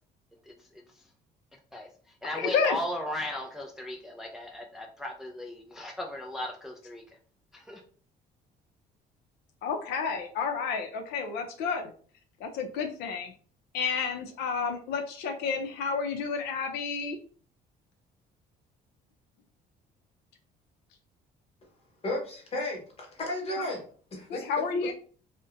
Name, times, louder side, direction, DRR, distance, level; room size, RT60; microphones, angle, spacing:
voice 1, 0.4-1.0 1.7-7.0 7.5-7.8, left 1 dB, 5° right, 1 dB, 0.3 m, -37 dB
voice 2, 2.3-2.8 9.6-11.9 12.4-13.3 13.7-17.2 24.3-24.9, left 5 dB, 80° left, 4 dB, 0.5 m, -30 dB
voice 3, 22.0-23.8 24.1-24.5, left 1 dB, 35° left, 0 dB, 1.0 m, -33 dB
2.5 x 2.1 x 2.4 m, 0.44 s
cardioid pair, 110°, 17 cm